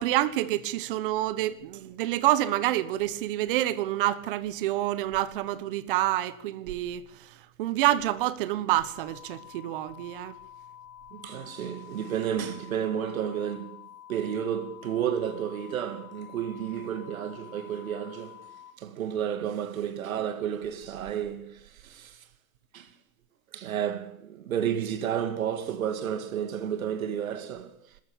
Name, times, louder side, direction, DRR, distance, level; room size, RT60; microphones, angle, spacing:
voice 1, 0.0-10.4, right 14 dB, 40° right, 1.3 m, -28 dB
sound 1, 8.7-18.7, left 11 dB, 80° left, 2.9 m, -49 dB
voice 2, 11.1-13.8 14.1-18.4 18.8-22.2 22.7-22.9 23.5-28.0, right 9 dB, 80° right, 2.4 m, -31 dB
24.0 x 14.0 x 8.6 m
supercardioid pair, 165°, 40 cm